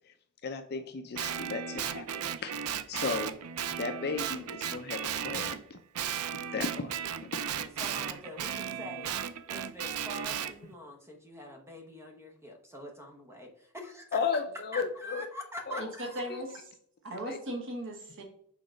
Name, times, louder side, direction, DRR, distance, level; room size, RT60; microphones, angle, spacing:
voice 1, 0.4-2.6 2.9-3.4 3.8-5.8 6.3-6.9 7.2-7.3 14.1-15.3 15.7-15.9 16.3-16.4 17.2-17.4, left 5 dB, 50° left, 6 dB, 0.5 m, -35 dB
Guitar, 1.2-5.6 6.0-10.5, right 9 dB, 85° right, 0.5 m, -35 dB
voice 2, 7.8-9.1 9.5-14.2 14.7-16.6, equal, 10° right, 2 dB, 1.0 m, -44 dB
voice 3, 16.1-16.6 17.0-18.2, right 1 dB, 60° right, 2 dB, 1.3 m, -37 dB
5.9 x 3.8 x 5.1 m, 0.65 s
head